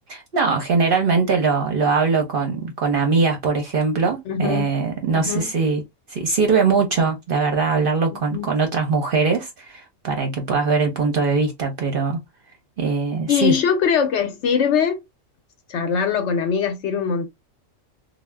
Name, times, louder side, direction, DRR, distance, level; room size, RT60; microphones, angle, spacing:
voice 1, 0.1-5.8 6.1-12.2 12.8-13.6, right 4 dB, 55° right, 0.7 m, -21 dB
voice 2, 4.3-4.7 5.1-5.5 8.1-8.5 13.3-15.0 15.7-17.3, left 7 dB, 70° left, 0.8 m, -22 dB
2.3 x 2.0 x 3.2 m
omnidirectional pair, 1.4 m